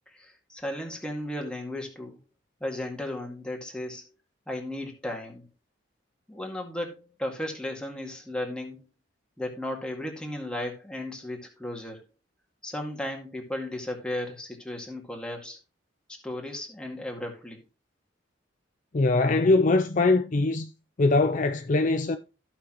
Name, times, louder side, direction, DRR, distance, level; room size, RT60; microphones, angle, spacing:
voice 1, 0.1-2.2 2.6-4.1 4.5-5.5 6.3-8.8 9.4-12.0 12.6-15.6 16.2-17.6, left 1 dB, 5° left, 2.0 m, -35 dB
voice 2, 18.9-20.7 21.0-22.2, left 3 dB, 40° left, 0.5 m, -22 dB
14.5 x 5.9 x 3.0 m
head